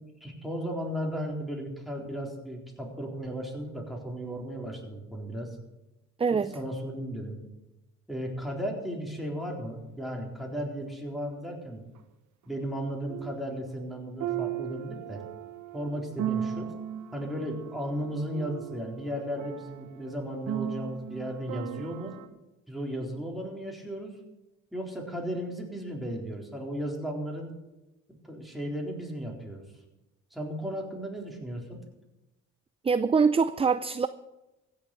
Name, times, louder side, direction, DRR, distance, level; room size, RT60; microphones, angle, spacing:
voice 1, 0.2-5.6 6.3-7.4 8.1-11.8 12.5-15.2 15.7-16.7 17.1-22.1 22.7-24.1 24.7-27.5 28.2-29.6 30.3-31.8, equal, ahead, 4.0 m, -35 dB
voice 2, 6.2-6.6 32.8-34.1, right 5 dB, 20° right, 0.4 m, -24 dB
sound 1, 11.9-12.0 13.1-13.4 14.2-22.3, right 10 dB, 75° right, 1.2 m, -37 dB
15.5 x 7.2 x 8.5 m
cardioid pair, 90°, 30 cm